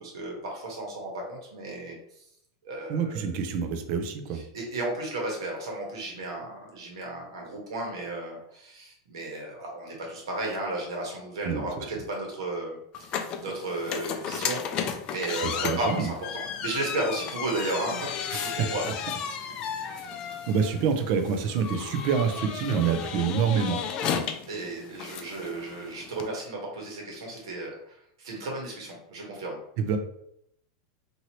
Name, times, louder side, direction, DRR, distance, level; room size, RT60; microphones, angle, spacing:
voice 1, 0.0-2.0 2.6-3.4 4.3-13.1 13.4-14.6 15.1-18.8 19.4-19.5 19.8-19.9 24.5-29.6, right 2 dB, 85° right, -1 dB, 1.2 m, -34 dB
voice 2, 2.9-4.4 11.4-11.7 15.4-16.1 18.6-18.7 19.8-20.1 20.5-23.8 29.8-30.0, right 6 dB, 50° right, 7 dB, 0.5 m, -27 dB
sound 1, 12.9-26.3, left 7 dB, 35° left, 0.3 m, -34 dB
2.9 x 2.7 x 2.9 m, 0.74 s
supercardioid pair, 140°, 2 cm